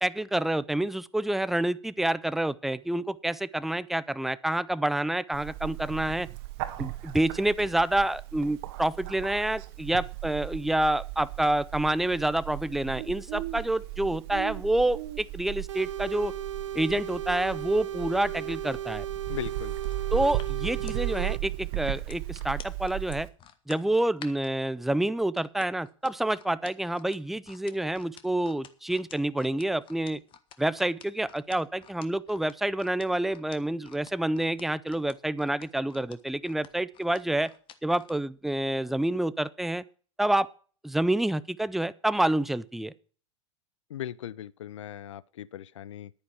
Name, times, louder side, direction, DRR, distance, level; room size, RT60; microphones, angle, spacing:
voice 1, 0.0-6.3 6.8-16.3 16.7-19.1 20.1-23.3 23.7-30.2 30.6-37.5 37.8-39.8 40.2-40.5 40.8-42.9, right 1 dB, ahead, 0.5 m, -28 dB
Bird, 5.3-23.3, right 18 dB, 50° right, 1.6 m, -36 dB
sound 1, 15.7-21.4, right 11 dB, 75° right, 0.5 m, -36 dB
voice 2, 19.3-19.8 43.9-46.1, left 11 dB, 70° left, 0.5 m, -38 dB
sound 2, 19.8-24.5 25.4-38.2 38.6-38.8, left 9 dB, 30° left, 1.2 m, -50 dB
10.5 x 9.5 x 5.9 m
figure-of-eight pair, 90°, 16 cm